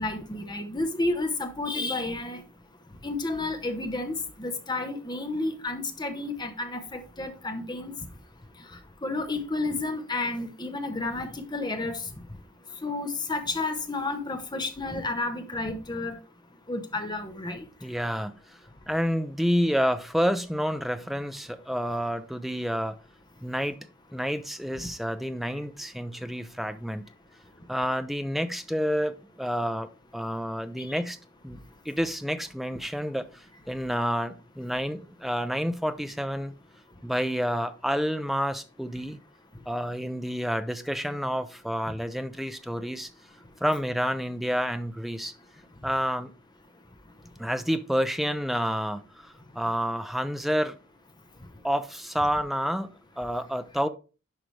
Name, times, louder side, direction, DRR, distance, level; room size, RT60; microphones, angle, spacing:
voice 1, 0.0-2.4 3.0-7.9 9.0-12.0 12.8-16.2 16.7-17.6 30.9-31.0, left 2 dB, 20° left, 1.0 m, -31 dB
voice 2, 17.8-18.6 18.9-23.0 23.4-23.8 24.1-27.1 27.7-31.2 31.4-36.5 37.0-39.2 39.7-43.1 43.6-45.3 45.8-46.3 47.4-50.7 51.6-53.9, equal, ahead, 0.5 m, -29 dB
10.0 x 5.0 x 3.3 m
head